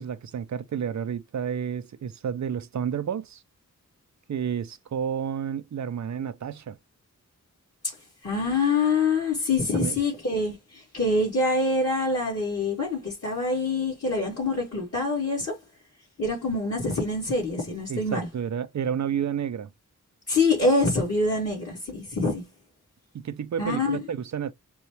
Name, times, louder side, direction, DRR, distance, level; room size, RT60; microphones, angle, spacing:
voice 1, 0.0-3.4 4.3-6.8 9.7-10.0 17.9-19.7 23.1-24.5, right 8 dB, 55° right, 0.5 m, -30 dB
voice 2, 8.2-15.6 16.2-18.3 20.3-22.5 23.6-24.0, left 3 dB, 45° left, 2.1 m, -25 dB
6.9 x 2.3 x 3.1 m
wide cardioid pair, 65°, 33 cm